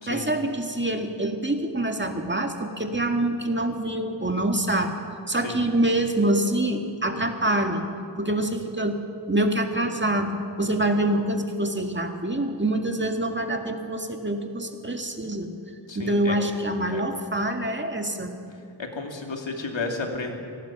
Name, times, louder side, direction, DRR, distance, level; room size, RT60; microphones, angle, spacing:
voice 1, 0.1-5.0 5.3-7.8 8.2-9.0 9.3-15.5 16.0-18.3, right 1 dB, 25° right, 4 dB, 1.9 m, -25 dB
voice 2, 15.9-16.4 16.9-17.0 18.8-20.4, left 3 dB, 75° left, 2 dB, 2.6 m, -32 dB
25.0 x 18.0 x 6.0 m, 2.4 s
wide cardioid pair, 75°, 46 cm